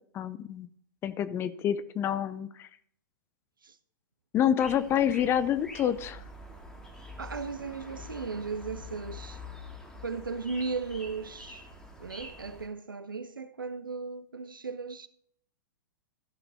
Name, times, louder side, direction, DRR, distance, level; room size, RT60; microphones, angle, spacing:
voice 1, 0.1-0.7 1.0-2.7 4.3-6.2, left 9 dB, 20° left, 0.5 m, -27 dB
sound 1, 4.6-12.7, left 2 dB, 5° left, 1.9 m, -46 dB
voice 2, 7.2-9.4 10.0-11.7 12.0-15.1, right 4 dB, 80° right, 0.7 m, -36 dB
14.5 x 6.0 x 4.0 m
figure-of-eight pair, 110°, 11 cm